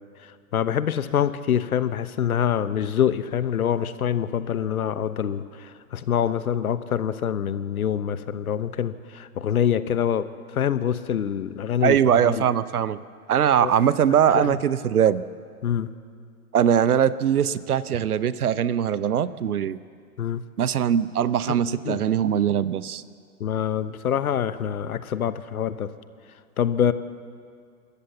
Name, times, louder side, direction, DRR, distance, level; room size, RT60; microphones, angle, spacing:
voice 1, 0.5-10.3 10.5-12.4 13.6-13.7 14.3-14.6 15.6-15.9 20.2-20.4 21.5-21.6 21.8-22.0 23.4-25.9 26.6-26.9, left 9 dB, 70° left, 13 dB, 1.1 m, -25 dB
voice 2, 11.8-13.0 13.3-15.2 16.5-19.8 20.6-23.0, right 9 dB, 75° right, 17 dB, 0.9 m, -21 dB
26.5 x 14.0 x 7.2 m, 2.2 s
figure-of-eight pair, 110°, 45 cm